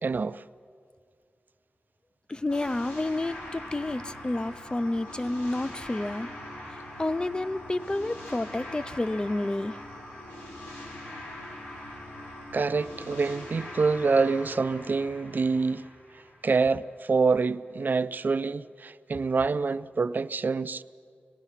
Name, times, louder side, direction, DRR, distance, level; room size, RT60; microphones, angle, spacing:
voice 1, 0.0-0.4 12.5-15.9 16.1-20.8, right 4 dB, 55° right, 0.5 m, -26 dB
voice 2, 2.3-6.3 6.7-9.8, left 2 dB, 25° left, 0.5 m, -30 dB
sound 1, 2.5-16.8, left 1 dB, 85° left, 4.1 m, -42 dB
25.5 x 19.0 x 5.8 m
wide cardioid pair, 110°, 4 cm